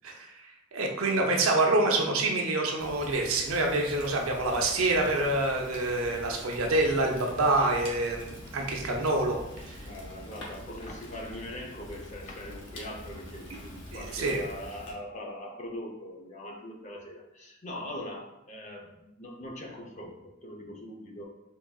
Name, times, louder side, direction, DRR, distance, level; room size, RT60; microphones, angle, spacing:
voice 1, 0.0-9.8 13.9-14.4, right 2 dB, 85° right, 1 dB, 0.6 m, -27 dB
Fire, 2.8-14.9, left 1 dB, 60° left, 0.8 m, -45 dB
voice 2, 9.8-21.3, left 1 dB, 35° left, 0 dB, 0.6 m, -41 dB
3.8 x 3.4 x 2.3 m, 0.90 s
head